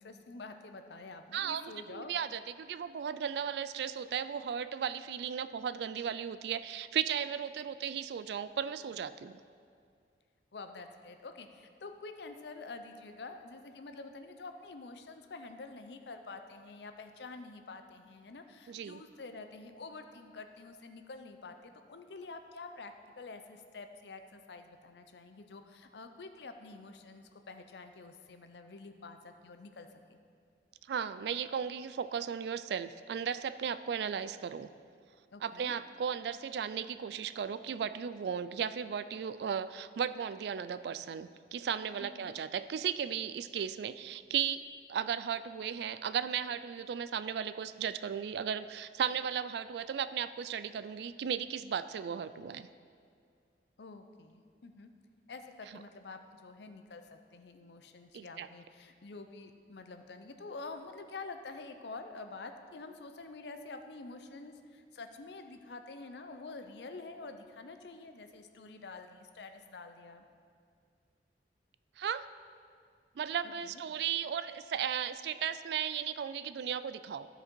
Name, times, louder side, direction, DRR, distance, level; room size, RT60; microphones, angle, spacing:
voice 1, 0.0-2.1 10.5-30.2 35.3-35.7 42.0-42.3 53.8-54.9 55.3-70.2 73.4-73.8, left 3 dB, 70° left, 7 dB, 0.6 m, -48 dB
voice 2, 1.3-9.4 18.7-19.0 30.9-34.7 35.4-44.6 44.9-52.7 58.1-58.5 72.0-72.2 73.2-77.3, right 8 dB, 65° right, 13 dB, 0.3 m, -35 dB
13.0 x 4.9 x 4.5 m, 2.2 s
head